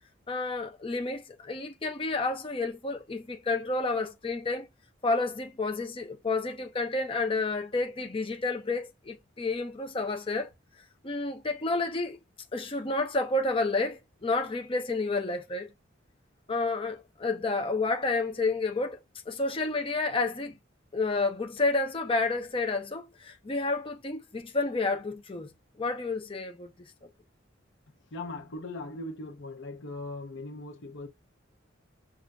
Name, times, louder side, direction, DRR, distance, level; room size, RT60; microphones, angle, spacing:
voice 1, 0.3-4.7 5.0-10.5 11.0-12.2 12.5-15.7 16.5-19.0 19.3-20.6 20.9-25.5 25.8-26.7 27.0-27.1, left 3 dB, 25° left, 0.7 m, -30 dB
voice 2, 28.1-31.1, left 2 dB, 70° left, 0.8 m, -39 dB
6.4 x 2.5 x 2.3 m
head